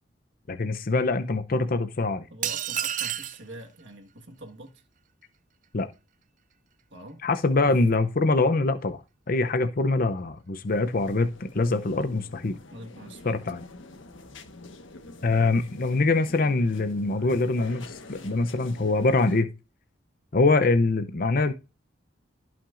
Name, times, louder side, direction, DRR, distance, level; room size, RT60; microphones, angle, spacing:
voice 1, 0.5-2.3 5.7-5.9 7.2-9.0 9.3-12.6 13.2-13.6 15.2-19.5 20.3-21.5, left 3 dB, 45° left, 0.7 m, -24 dB
voice 2, 2.3-4.8 6.9-7.2 7.6-7.8 12.7-13.4, right 1 dB, 65° right, 1.6 m, -44 dB
sound 1, 2.4-3.4, right 10 dB, 40° right, 0.5 m, -29 dB
sound 2, 10.7-19.4, left 2 dB, 80° left, 1.4 m, -46 dB
16.0 x 5.9 x 2.6 m
head